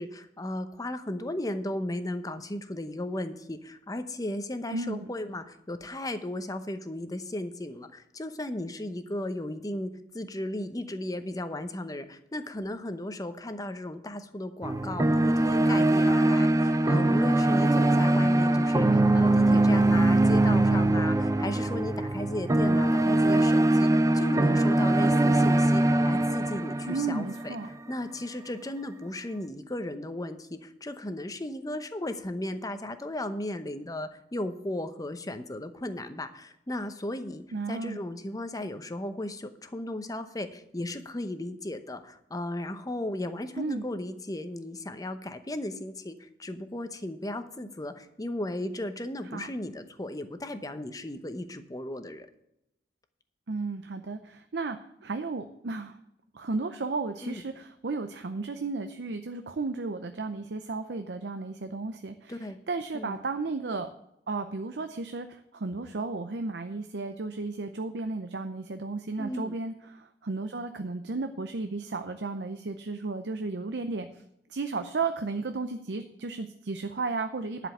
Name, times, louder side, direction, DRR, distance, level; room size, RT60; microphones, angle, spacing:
voice 1, 0.0-27.6 27.9-37.4 37.7-52.3 57.2-57.4 62.3-62.6 62.9-63.2 69.2-69.6, left 1 dB, 20° left, 9 dB, 0.8 m, -35 dB
voice 2, 4.7-5.1 26.9-27.7 37.5-38.0 43.6-43.8 49.3-49.5 53.5-56.0 56.3-63.9 64.3-74.2 74.5-77.7, right 3 dB, 70° right, 8 dB, 0.6 m, -34 dB
sound 1, 14.6-27.8, right 1 dB, 20° right, 0.5 m, -22 dB
11.0 x 5.1 x 8.0 m, 0.82 s
head